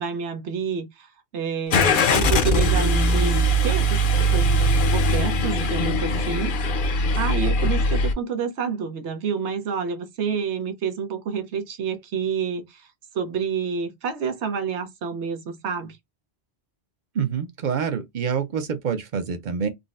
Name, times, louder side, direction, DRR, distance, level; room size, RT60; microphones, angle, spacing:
voice 1, 0.0-4.5 4.9-6.6 6.8-12.9 13.1-16.0, right 6 dB, 90° right, 1.1 m, -29 dB
Car / Engine starting, 1.7-8.1, equal, 55° left, 0.7 m, -21 dB
voice 2, 17.1-19.7, right 7 dB, 50° right, 0.7 m, -26 dB
3.8 x 2.0 x 2.4 m
omnidirectional pair, 1.1 m